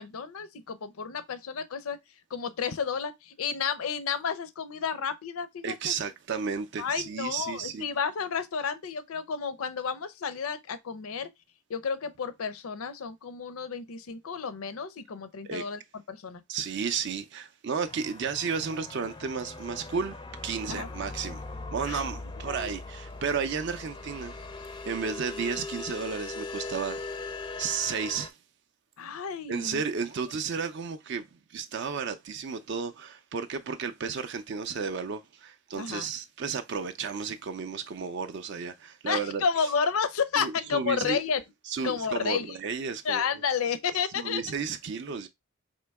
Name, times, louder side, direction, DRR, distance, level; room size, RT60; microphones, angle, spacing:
voice 1, 0.0-2.0 2.3-5.9 6.8-11.3 11.7-15.8 16.1-16.4 20.7-20.9 21.9-22.1 22.5-22.8 29.0-29.8 35.8-36.1 39.1-41.4 41.8-42.6 43.0-44.4, left 6 dB, 75° left, 0.5 m, -31 dB
voice 2, 5.6-7.9 15.4-15.6 16.5-20.2 20.4-21.4 21.7-24.4 24.8-27.0 27.6-28.4 29.5-39.4 40.4-41.2 41.7-43.3 44.2-45.3, right 6 dB, 50° right, 0.4 m, -33 dB
sound 1, 17.9-28.3, left 3 dB, 20° left, 0.4 m, -40 dB
4.3 x 2.9 x 3.4 m
head